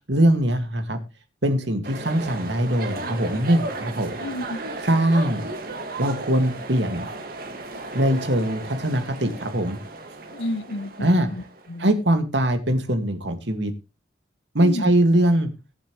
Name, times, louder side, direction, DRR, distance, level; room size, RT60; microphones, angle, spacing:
voice 1, 0.1-1.0 1.4-4.2 4.8-5.5 6.0-7.1 7.9-9.8 11.0-11.3 11.8-13.7 14.5-15.5, right 1 dB, 75° right, 2.3 m, -21 dB
sound 1, 1.8-11.7, right 2 dB, 50° right, 2.2 m, -35 dB
voice 2, 4.2-4.6 10.3-11.4 11.7-11.9 14.6-14.9, left 1 dB, 90° left, 0.9 m, -31 dB
21.0 x 7.4 x 3.3 m
head